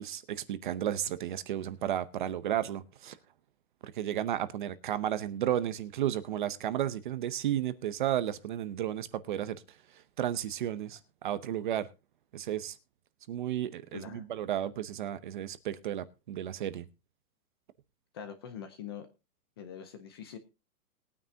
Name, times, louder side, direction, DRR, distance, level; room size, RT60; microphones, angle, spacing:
voice 1, 0.0-3.2 3.8-9.6 10.2-11.9 12.3-12.8 13.3-16.9, right 11 dB, 35° right, 0.7 m, -33 dB
voice 2, 13.9-14.3 18.1-19.1 19.6-20.4, left 8 dB, 15° left, 0.6 m, -43 dB
20.5 x 9.4 x 2.7 m
hypercardioid pair, 175°, 46 cm